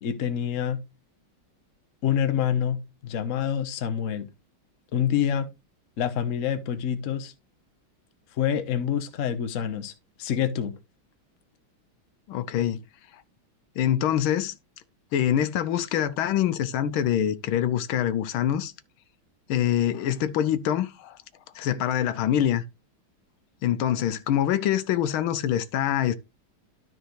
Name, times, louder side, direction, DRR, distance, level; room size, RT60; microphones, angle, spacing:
voice 1, 0.0-0.8 2.0-4.3 4.9-5.5 6.0-7.3 8.4-9.9 10.2-10.7, left 9 dB, 50° left, 1.0 m, -26 dB
voice 2, 12.3-12.8 13.8-14.5 15.1-18.7 19.5-21.2 21.5-22.6 23.6-26.1, left 10 dB, 85° left, 1.6 m, -25 dB
12.5 x 4.6 x 3.1 m
omnidirectional pair, 2.2 m